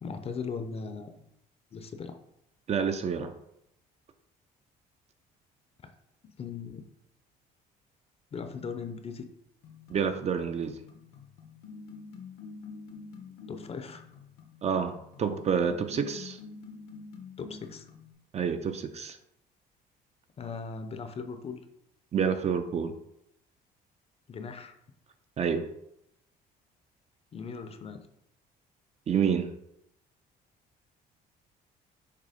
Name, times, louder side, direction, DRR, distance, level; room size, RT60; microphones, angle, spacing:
voice 1, 0.0-1.2 1.7-2.2 5.8-5.9 6.2-6.9 8.3-9.3 13.5-14.0 17.4-17.9 20.4-21.6 24.3-24.7 27.3-28.0, left 5 dB, 35° left, 8 dB, 0.7 m, -38 dB
voice 2, 2.7-3.3 9.9-10.7 14.6-16.4 18.3-19.2 22.1-22.9 25.4-25.7 29.1-29.5, right 7 dB, 40° right, 8 dB, 0.6 m, -28 dB
sound 1, 9.6-18.1, left 4 dB, 75° left, 1.1 m, -47 dB
6.6 x 3.0 x 5.1 m, 0.79 s
cardioid pair, 110°, 17 cm